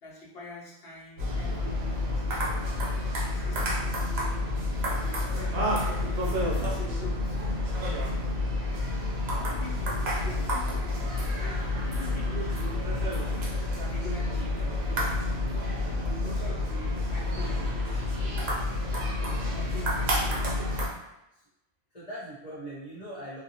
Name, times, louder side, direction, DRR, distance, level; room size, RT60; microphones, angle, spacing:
voice 1, 0.0-2.2 3.2-4.5 5.0-7.4 9.5-15.3 15.9-20.6, left 1 dB, 70° left, -4 dB, 1.0 m, -45 dB
sound 1, 1.2-20.9, left 1 dB, 75° right, 1.0 m, -29 dB
voice 2, 6.3-6.7 9.3-9.5 10.0-10.3 21.3-21.4 21.9-23.4, right 1 dB, 40° left, -11 dB, 1.1 m, -42 dB
2.8 x 2.4 x 2.8 m, 0.93 s
omnidirectional pair, 1.1 m